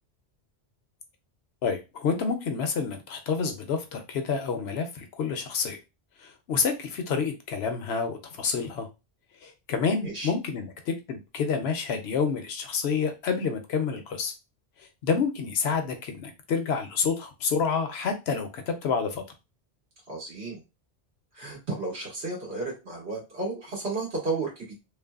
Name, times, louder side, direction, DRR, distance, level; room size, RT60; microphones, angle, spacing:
voice 1, 1.6-5.8 6.2-8.9 9.4-14.3 14.8-19.2, left 5 dB, 75° left, 6 dB, 0.8 m, -28 dB
voice 2, 20.1-20.6 21.3-24.7, right 3 dB, 70° right, -3 dB, 1.6 m, -33 dB
3.2 x 2.1 x 2.3 m, 0.26 s
omnidirectional pair, 1.1 m